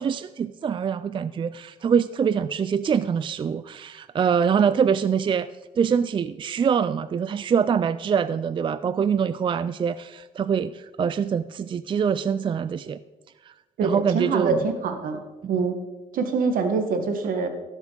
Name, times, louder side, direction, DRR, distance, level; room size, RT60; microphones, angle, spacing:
voice 1, 0.0-5.5 5.8-13.0 13.4-13.5 13.8-14.6, right 7 dB, 35° right, 14 dB, 0.4 m, -24 dB
voice 2, 13.8-15.2 15.5-15.8 16.1-17.5, right 4 dB, 75° right, 6 dB, 1.6 m, -24 dB
17.0 x 7.3 x 4.0 m, 1.2 s
cardioid pair, 85°, 15 cm